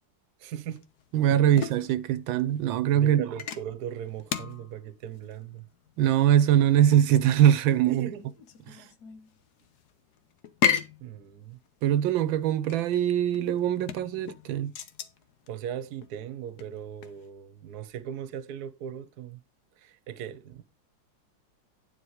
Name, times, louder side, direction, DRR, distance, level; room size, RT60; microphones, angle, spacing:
voice 1, 0.4-0.8 1.5-1.6 2.9-5.6 7.9-8.3 11.0-11.6 15.5-19.4 19.8-20.6, right 9 dB, 60° right, 1.3 m, -38 dB
sound 1, 0.7-17.3, left 8 dB, 60° left, 1.4 m, -36 dB
voice 2, 1.1-3.3 6.0-8.1 8.7-8.8 11.8-14.7, right 11 dB, 80° right, 1.4 m, -22 dB
9.7 x 4.8 x 4.9 m
omnidirectional pair, 2.1 m